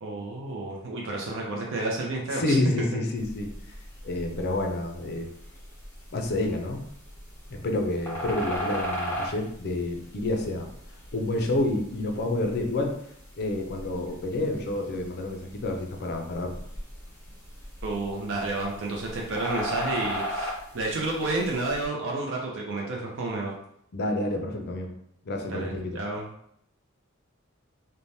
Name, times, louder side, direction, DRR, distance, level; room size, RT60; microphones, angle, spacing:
voice 1, 0.0-2.6 17.8-23.5 25.4-26.3, right 2 dB, 60° right, -2 dB, 0.5 m, -31 dB
voice 2, 2.3-3.7 4.0-5.3 6.1-6.8 7.5-10.7 11.1-13.0 13.3-16.6 23.9-24.9 25.2-26.0, left 2 dB, 50° left, 3 dB, 0.5 m, -29 dB
sound 1, 3.2-21.9, equal, 10° left, 0.8 m, -38 dB
3.2 x 2.1 x 2.6 m, 0.71 s
head